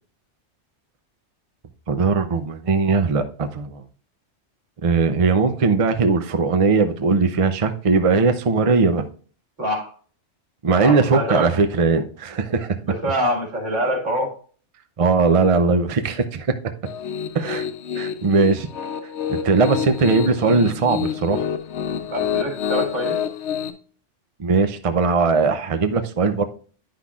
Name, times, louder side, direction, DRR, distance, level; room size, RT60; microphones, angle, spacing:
voice 1, 1.9-3.8 4.8-9.0 10.6-12.8 15.0-16.5 17.3-17.7 17.9-18.7 19.3-21.4 24.4-26.4, right 4 dB, 35° right, 0.6 m, -19 dB
voice 2, 9.6-9.9 10.7-11.5 12.9-14.3 22.1-23.2, equal, 80° right, 2.6 m, -25 dB
Piano, 16.9-23.7, left 8 dB, 65° left, 1.0 m, -27 dB
10.0 x 5.7 x 2.4 m
omnidirectional pair, 1.2 m